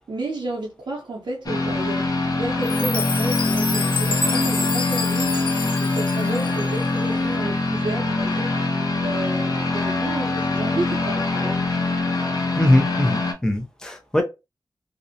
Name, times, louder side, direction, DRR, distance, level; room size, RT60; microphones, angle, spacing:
voice 1, 0.0-5.4 5.8-8.5 9.0-11.6, right 2 dB, 70° right, 0.6 m, -31 dB
sound 1, 1.4-13.3, left 2 dB, 50° left, 0.7 m, -23 dB
Chime, 2.6-6.9, left 4 dB, 80° left, 0.4 m, -28 dB
voice 2, 12.5-14.2, left 1 dB, 10° left, 0.5 m, -21 dB
2.5 x 2.0 x 2.6 m
wide cardioid pair, 90°, 8 cm